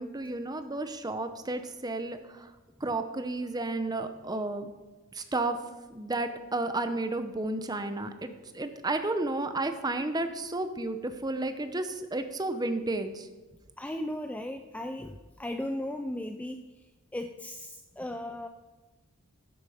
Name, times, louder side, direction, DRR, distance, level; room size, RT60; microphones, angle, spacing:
voice 1, 0.0-2.5 2.8-4.7 5.1-5.6 5.9-13.3, right 2 dB, 20° right, 8 dB, 0.8 m, -32 dB
voice 2, 13.8-16.7 17.1-18.5, left 1 dB, 5° left, 6 dB, 0.4 m, -36 dB
12.0 x 10.0 x 5.0 m, 1.2 s
head